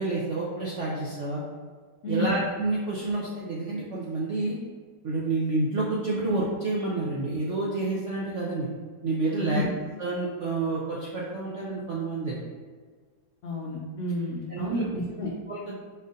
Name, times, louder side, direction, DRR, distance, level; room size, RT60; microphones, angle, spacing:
voice 1, 0.0-1.4 2.1-4.6 5.0-8.7 9.0-9.7 10.0-12.4 14.5-14.9 15.5-15.7, right 2 dB, 70° right, -6 dB, 0.7 m, -29 dB
voice 2, 2.0-2.4 9.4-9.7 13.4-15.3, equal, 80° left, -3 dB, 0.6 m, -30 dB
4.2 x 2.5 x 3.9 m, 1.6 s
omnidirectional pair, 2.0 m